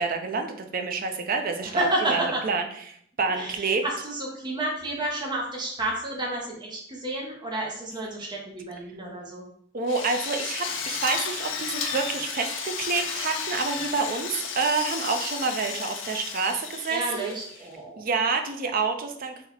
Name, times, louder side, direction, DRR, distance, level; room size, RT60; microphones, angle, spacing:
voice 1, 0.0-3.8 9.7-17.3 18.0-19.5, right 4 dB, 45° right, 5 dB, 0.5 m, -28 dB
voice 2, 1.6-2.4 3.3-9.4 16.9-18.0, right 1 dB, 25° right, -1 dB, 0.8 m, -30 dB
Drill, 9.9-17.7, left 6 dB, 75° left, 0.6 m, -33 dB
3.1 x 3.0 x 3.9 m, 0.67 s
head